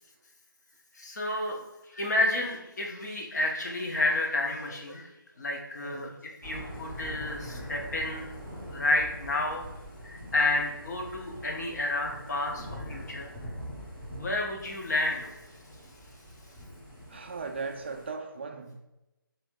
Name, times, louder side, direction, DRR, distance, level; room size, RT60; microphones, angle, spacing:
voice 1, 0.9-1.6 1.8-5.1 5.4-6.1 6.4-8.3 8.7-9.6 10.0-13.3 14.2-15.3, left 2 dB, 50° left, 0.9 m, -30 dB
voice 2, 5.8-6.2 7.1-7.2 17.1-18.8, right 4 dB, 30° right, 0.3 m, -38 dB
Thunder / Rain, 6.4-18.1, equal, 5° left, 0.7 m, -43 dB
4.2 x 2.7 x 3.6 m
figure-of-eight pair, 155°, 12 cm